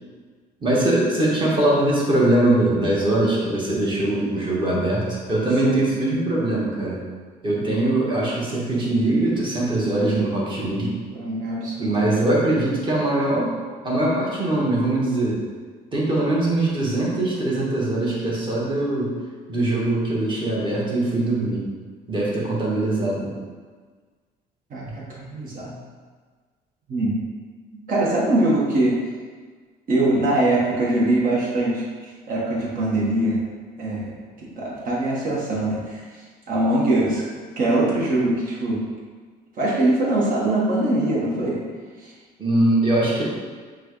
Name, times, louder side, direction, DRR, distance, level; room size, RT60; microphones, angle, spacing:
voice 1, 0.6-7.0 7.4-10.9 11.8-13.5 13.8-15.4 15.9-19.1 19.5-21.7 22.1-23.3 42.4-43.2, right 1 dB, 30° right, -6 dB, 1.4 m, -22 dB
voice 2, 11.1-12.0 24.7-25.7 26.9-27.2 27.7-29.0 29.9-31.8 32.3-33.4 33.8-36.0 36.5-37.3 37.6-38.8 39.6-41.6 42.0-42.1, right 1 dB, 55° right, -5 dB, 1.3 m, -22 dB
6.0 x 2.4 x 3.1 m, 1.5 s
cardioid pair, 110°, 17 cm